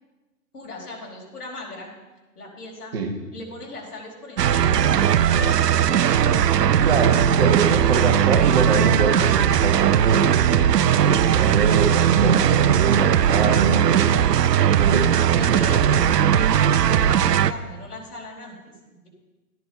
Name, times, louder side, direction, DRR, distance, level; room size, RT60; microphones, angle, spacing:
voice 1, 0.5-1.9 2.3-3.0 3.3-4.8 5.1-6.2 15.1-19.1, left 2 dB, 75° left, -1 dB, 4.9 m, -39 dB
sound 1, 4.4-17.5, right 9 dB, 85° right, 0.8 m, -18 dB
voice 2, 6.8-10.5 11.0-14.1 14.6-15.9, right 4 dB, 40° right, 4 dB, 1.6 m, -25 dB
14.0 x 10.5 x 5.5 m, 1.2 s
hypercardioid pair, 170°, 47 cm